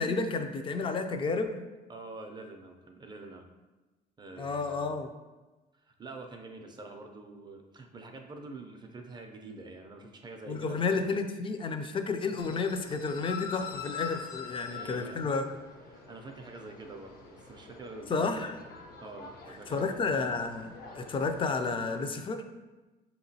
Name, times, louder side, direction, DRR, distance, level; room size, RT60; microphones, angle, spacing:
voice 1, 0.0-1.6 4.4-5.1 10.5-15.5 18.1-18.5 19.7-22.4, left 4 dB, 30° left, 7 dB, 0.4 m, -31 dB
voice 2, 1.9-3.5 4.2-5.0 5.8-11.1 14.6-15.2 15.9-18.5 19.0-20.1, right 2 dB, 25° right, 4 dB, 0.4 m, -46 dB
sound 1, 12.4-22.0, left 6 dB, 65° left, 0.7 m, -45 dB
5.1 x 2.9 x 2.7 m, 1.2 s
cardioid pair, 110°, 17 cm